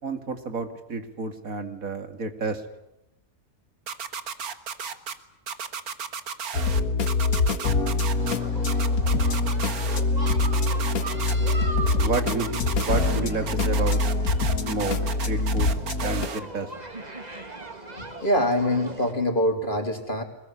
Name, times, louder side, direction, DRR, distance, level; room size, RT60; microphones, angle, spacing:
voice 1, 0.0-2.6 12.0-14.0 14.6-15.8 16.0-16.7, right 4 dB, 65° right, 8 dB, 2.7 m, -30 dB
sound 1, 3.9-5.1 5.5-6.8 7.1-8.3 8.7-10.0 10.3-11.5 11.9-13.2 13.5-16.4, right 6 dB, 85° right, 2.0 m, -34 dB
sound 2, 6.5-16.3, left 3 dB, 75° left, 2.0 m, -24 dB
sound 3, 8.2-19.1, right 2 dB, 30° right, 2.7 m, -40 dB
voice 2, 18.0-20.2, left 1 dB, 35° left, 5 dB, 3.7 m, -24 dB
22.0 x 22.0 x 9.9 m, 0.87 s
omnidirectional pair, 1.5 m